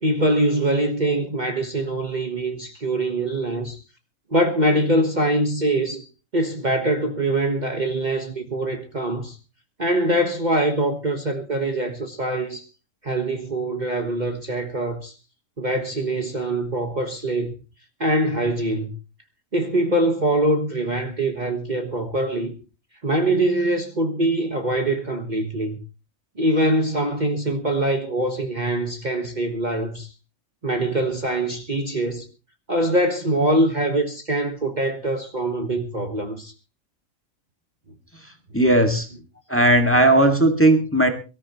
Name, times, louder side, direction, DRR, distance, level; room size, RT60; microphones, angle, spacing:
voice 1, 0.0-3.8 4.3-6.1 6.3-9.4 9.8-12.7 13.0-15.1 15.6-17.5 18.0-18.9 19.5-22.5 23.0-25.8 26.4-30.1 30.6-32.2 32.7-36.5, right 1 dB, 35° right, 1.4 m, -23 dB
voice 2, 38.5-39.1 39.5-41.1, right 1 dB, 10° left, 1.8 m, -16 dB
23.5 x 13.5 x 3.0 m
omnidirectional pair, 1.4 m